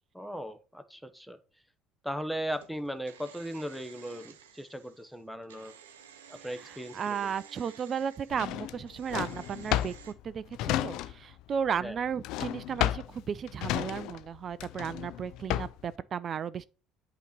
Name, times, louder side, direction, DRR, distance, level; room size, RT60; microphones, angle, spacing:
voice 1, 0.1-1.4 2.0-5.7 6.3-7.3 11.8-12.0, equal, ahead, 0.9 m, -38 dB
sound 1, 2.5-10.1, right 8 dB, 85° right, 0.6 m, -53 dB
voice 2, 6.5-9.9 10.2-16.6, right 7 dB, 45° right, 0.3 m, -34 dB
Drawer open or close, 8.3-11.4 11.7-15.9, left 13 dB, 65° left, 0.3 m, -32 dB
8.2 x 3.0 x 5.1 m
hypercardioid pair, 65°, 0 cm